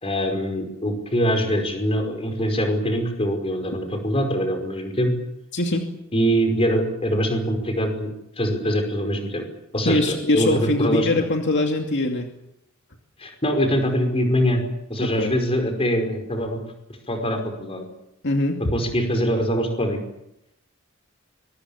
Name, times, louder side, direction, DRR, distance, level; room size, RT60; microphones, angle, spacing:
voice 1, 0.0-5.1 6.1-9.4 9.7-11.2 13.2-14.6 14.9-16.6 17.1-17.8 18.7-20.0, equal, 30° left, 5 dB, 5.1 m, -23 dB
voice 2, 5.5-5.8 9.8-12.3 15.0-15.3 18.2-18.6, left 2 dB, 60° left, 3 dB, 2.6 m, -22 dB
24.5 x 23.5 x 7.2 m, 0.81 s
head